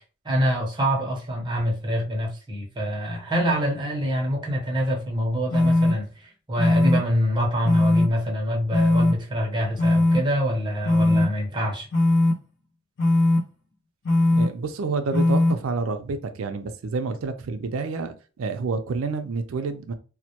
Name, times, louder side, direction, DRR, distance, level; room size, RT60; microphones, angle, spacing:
voice 1, 0.2-11.9, equal, 20° right, 0.7 m, -25 dB
sound 1, 5.5-5.9 6.6-7.0 7.6-8.0 8.7-9.1 9.8-10.2 10.8-11.2 11.9-12.3 13.0-13.4 14.0-14.5 15.1-15.5, left 2 dB, 60° left, 0.6 m, -19 dB
voice 2, 14.3-19.9, right 4 dB, 80° right, 0.4 m, -29 dB
2.1 x 2.1 x 2.8 m
head